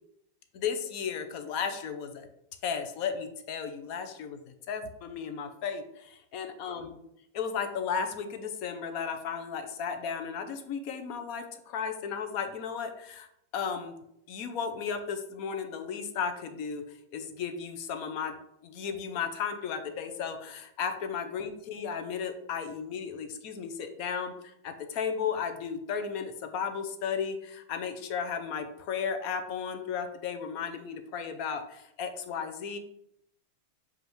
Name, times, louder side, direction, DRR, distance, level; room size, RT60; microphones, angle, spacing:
voice 1, 0.5-2.3 2.6-7.0 7.3-13.3 13.5-14.0 14.3-18.3 18.6-32.8, left 6 dB, 35° left, 7 dB, 0.4 m, -34 dB
5.2 x 2.4 x 3.1 m, 0.76 s
supercardioid pair, 175°, 0 cm